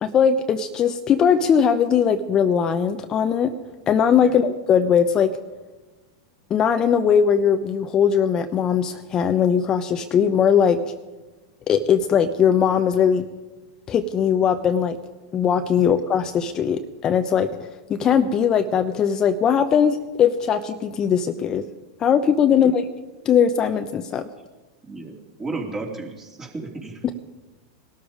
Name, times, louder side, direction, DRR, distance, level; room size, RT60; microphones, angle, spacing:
voice 1, 0.0-3.5 3.9-5.4 6.5-10.9 11.7-13.3 13.9-15.0 15.3-17.6 17.9-21.6 22.0-22.9 23.2-24.3 27.0-27.1, left 7 dB, 30° left, 8 dB, 0.8 m, -20 dB
voice 2, 24.8-27.1, right 3 dB, 20° right, 1 dB, 3.0 m, -34 dB
19.0 x 13.0 x 5.1 m, 1.2 s
hypercardioid pair, 100°, 2 cm